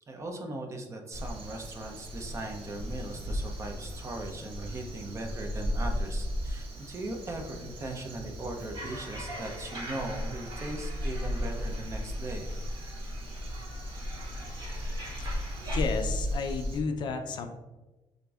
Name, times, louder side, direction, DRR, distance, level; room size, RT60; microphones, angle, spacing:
voice 1, 0.1-12.5, right 2 dB, 30° right, 3 dB, 0.6 m, -39 dB
Crow, 1.1-16.8, equal, 80° right, 0.8 m, -36 dB
sound 1, 8.7-15.8, right 1 dB, 50° right, 1.2 m, -45 dB
voice 2, 15.2-17.5, left 5 dB, 55° left, 6 dB, 0.5 m, -33 dB
6.2 x 2.6 x 2.4 m, 1.1 s
cardioid pair, 120°, 9 cm